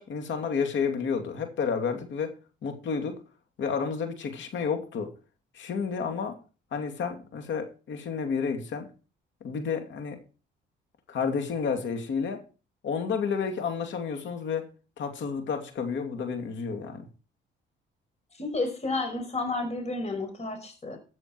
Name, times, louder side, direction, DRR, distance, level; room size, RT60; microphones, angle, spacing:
voice 1, 0.0-2.4 2.6-3.1 3.6-5.1 5.5-6.4 6.7-8.9 9.4-10.2 11.1-12.4 12.8-14.7 15.0-17.1, left 6 dB, 70° left, 5 dB, 2.7 m, -30 dB
voice 2, 18.3-21.0, left 2 dB, 35° left, 6 dB, 5.3 m, -31 dB
14.0 x 7.7 x 4.7 m, 0.35 s
cardioid pair, 90°, 20 cm